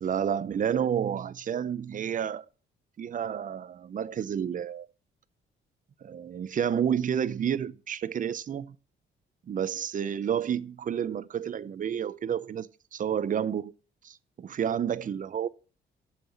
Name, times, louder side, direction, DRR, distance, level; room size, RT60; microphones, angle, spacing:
voice 1, 0.0-2.4 3.0-4.9 6.0-8.8 9.5-13.7 14.0-15.5, right 8 dB, 40° right, 0.6 m, -30 dB
7.4 x 5.7 x 7.2 m
cardioid pair, 90°, 20 cm